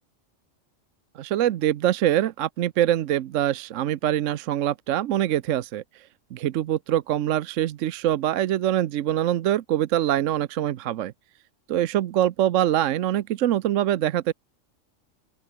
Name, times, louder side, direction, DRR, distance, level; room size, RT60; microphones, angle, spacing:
voice 1, 1.1-11.1 11.7-14.3, right 12 dB, 75° right, 1.0 m, -24 dB
open air
omnidirectional pair, 1.3 m